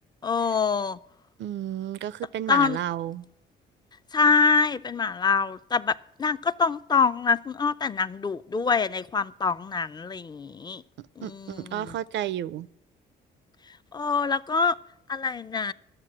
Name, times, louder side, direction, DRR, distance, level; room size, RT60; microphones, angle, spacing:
voice 1, 0.2-1.0 2.5-2.8 4.1-10.8 11.2-12.0 13.9-14.8 15.1-15.7, left 5 dB, 20° left, 0.4 m, -25 dB
voice 2, 1.4-3.2 11.0-12.7, right 11 dB, 65° right, 0.5 m, -32 dB
12.0 x 7.3 x 7.6 m
cardioid pair, 90°, 20 cm